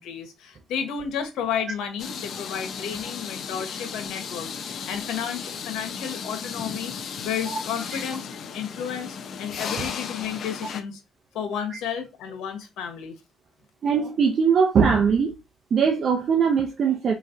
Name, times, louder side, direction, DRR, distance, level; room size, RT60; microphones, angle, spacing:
voice 1, 0.0-8.3 8.5-11.0 11.3-13.2, left 8 dB, 90° left, 1.1 m, -32 dB
sound 1, 2.0-10.8, left 6 dB, 60° left, 0.6 m, -35 dB
voice 2, 13.8-15.4 15.7-17.1, right 6 dB, 55° right, 0.7 m, -21 dB
4.6 x 3.1 x 2.7 m
cardioid pair, 90°, 0 cm